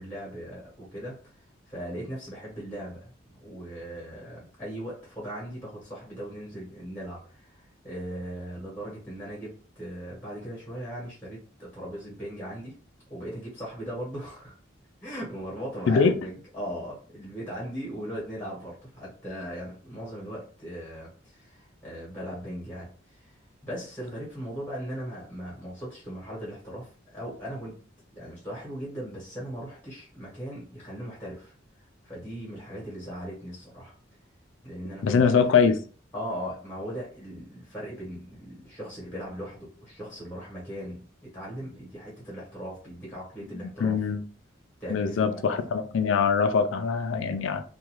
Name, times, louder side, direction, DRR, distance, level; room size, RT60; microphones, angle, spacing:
voice 1, 0.0-12.7 13.1-14.6 15.0-23.4 23.6-27.8 28.1-31.5 32.0-33.9 34.6-35.4 36.1-44.0 44.8-45.4, equal, 10° left, 1.1 m, -38 dB
voice 2, 35.0-35.8 43.8-44.2 44.9-47.6, left 5 dB, 75° left, 0.4 m, -23 dB
2.5 x 2.3 x 3.0 m
head